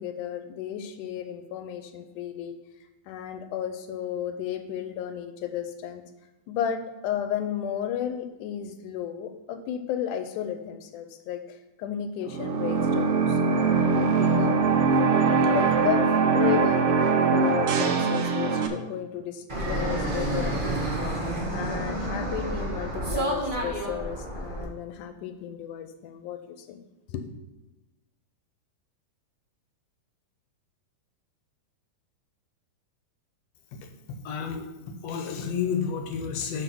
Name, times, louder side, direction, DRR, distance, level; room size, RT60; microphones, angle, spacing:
voice 1, 0.0-2.6 3.1-6.0 6.5-14.7 14.9-16.1 16.3-17.0 17.3-21.0 21.5-26.8 27.1-27.3, left 9 dB, 85° left, 7 dB, 2.2 m, -33 dB
sound 1, 12.3-18.7, right 4 dB, 80° right, 1.3 m, -22 dB
Fixed-wing aircraft airplane, 19.5-24.6, right 1 dB, 50° right, 0.6 m, -29 dB
voice 2, 34.1-36.6, left 6 dB, 70° left, 5 dB, 1.8 m, -31 dB
8.2 x 4.1 x 5.9 m, 1.1 s
omnidirectional pair, 3.5 m